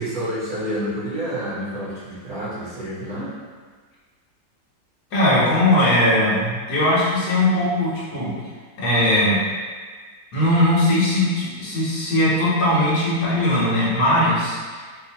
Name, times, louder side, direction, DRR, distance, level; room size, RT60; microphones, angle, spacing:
voice 1, 0.0-3.3, equal, 25° right, -16 dB, 1.6 m, -28 dB
voice 2, 5.1-8.3 8.8-9.4 10.3-14.8, left 1 dB, 65° left, -8 dB, 1.7 m, -19 dB
4.4 x 2.7 x 2.8 m, 1.5 s
omnidirectional pair, 1.9 m